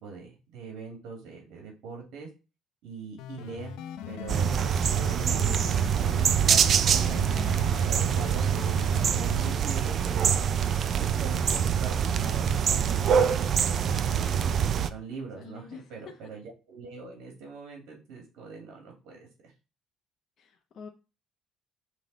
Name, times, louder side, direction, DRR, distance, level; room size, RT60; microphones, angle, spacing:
voice 1, 0.0-2.3 2.8-3.7 4.1-4.7 5.1-5.6 6.0-8.6 9.1-10.5 11.0-13.2 13.6-19.5, right 5 dB, 75° right, 1 dB, 2.2 m, -42 dB
sound 1, 3.2-9.5, left 9 dB, 85° left, 0.6 m, -40 dB
sound 2, 4.3-14.9, right 8 dB, 45° right, 0.5 m, -25 dB
voice 2, 5.2-5.7 15.4-15.8 20.4-20.9, left 6 dB, 45° left, 2 dB, 0.8 m, -44 dB
6.3 x 3.8 x 4.0 m, 0.30 s
cardioid pair, 135°, 0 cm